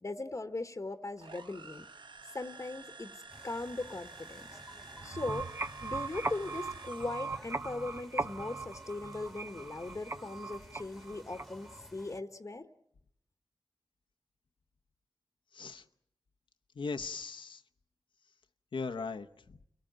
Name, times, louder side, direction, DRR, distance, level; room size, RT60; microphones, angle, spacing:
voice 1, 0.0-1.9 2.3-4.6 5.0-5.5 5.8-12.7, left 2 dB, 40° left, 8 dB, 1.1 m, -39 dB
sound 1, 1.2-7.5, right 3 dB, 70° right, 1.1 m, -51 dB
sound 2, 3.3-12.2, equal, ahead, 1.5 m, -55 dB
sound 3, 5.0-11.8, right 3 dB, 30° right, 1.0 m, -39 dB
voice 2, 16.8-17.6 18.7-19.6, left 4 dB, 85° left, 5 dB, 0.9 m, -38 dB
29.5 x 17.5 x 9.0 m, 0.73 s
cardioid pair, 55°, 8 cm